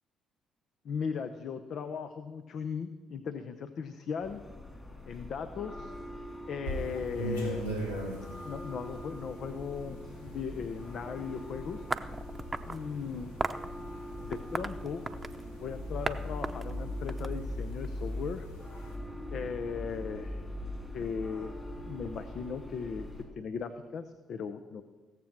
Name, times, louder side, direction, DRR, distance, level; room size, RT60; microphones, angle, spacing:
voice 1, 0.8-4.4 5.1-5.9 6.5-7.6 8.4-11.8 12.7-13.4 14.2-15.0 15.6-18.5 19.3-20.4 20.9-21.5 21.8-23.1 23.4-24.8, left 6 dB, 55° left, 9 dB, 0.7 m, -37 dB
sound 1, 4.2-23.2, left 1 dB, 20° left, 4.2 m, -41 dB
sound 2, 6.6-19.0, right 1 dB, 90° left, 2.0 m, -43 dB
sound 3, 11.9-12.8 13.4-13.7 14.3-15.4 16.1-16.2 16.4-17.9, right 3 dB, 25° right, 0.8 m, -35 dB
17.5 x 7.6 x 6.0 m, 1.3 s
hypercardioid pair, 45°, 0 cm